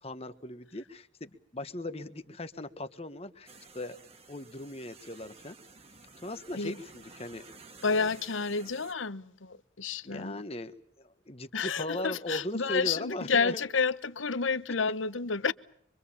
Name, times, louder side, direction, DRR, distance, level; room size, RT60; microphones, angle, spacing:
voice 1, 0.0-3.5 3.7-4.0 4.3-5.6 6.2-7.4 7.9-8.1 10.0-13.6, left 1 dB, 30° left, 1.3 m, -38 dB
sound 1, 3.5-8.9, right 3 dB, 30° right, 2.0 m, -53 dB
voice 2, 7.8-10.3 11.5-15.5, left 5 dB, 90° left, 1.0 m, -30 dB
25.0 x 25.0 x 7.2 m
head